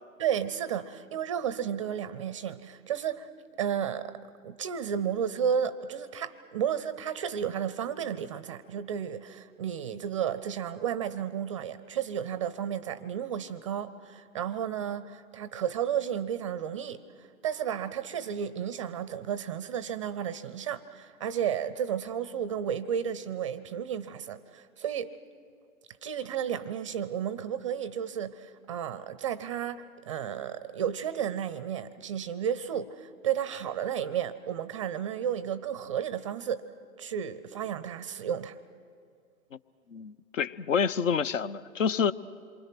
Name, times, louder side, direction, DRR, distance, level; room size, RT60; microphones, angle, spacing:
voice 1, 0.2-3.3 3.6-4.2 4.4-25.1 26.0-36.6 37.0-38.6, right 8 dB, 25° right, 16 dB, 0.5 m, -32 dB
voice 2, 39.9-42.1, left 6 dB, 65° left, 18 dB, 0.9 m, -28 dB
27.0 x 24.0 x 5.9 m, 2.4 s
hypercardioid pair, 135°, 42 cm